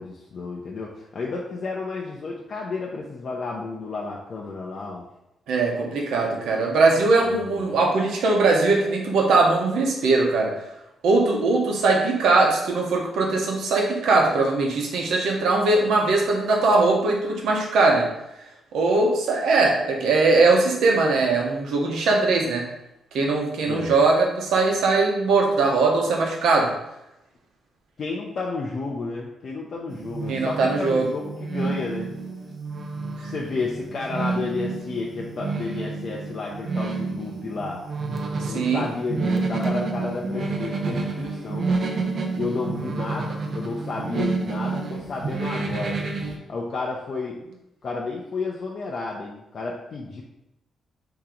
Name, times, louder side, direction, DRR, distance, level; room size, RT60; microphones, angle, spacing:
voice 1, 0.0-5.0 7.2-7.8 23.6-23.9 28.0-32.1 33.2-37.8 38.5-41.7 42.4-46.0 46.5-47.4 47.8-50.2, left 3 dB, 40° left, -3 dB, 0.5 m, -31 dB
voice 2, 5.5-10.5 11.0-18.1 18.7-22.7 23.1-26.7 30.3-31.1 38.4-38.8, right 3 dB, 85° right, 0 dB, 1.0 m, -20 dB
sound 1, 29.9-46.4, right 3 dB, 45° right, 0.6 m, -29 dB
4.5 x 2.9 x 3.8 m, 0.88 s
cardioid pair, 155°, 0 cm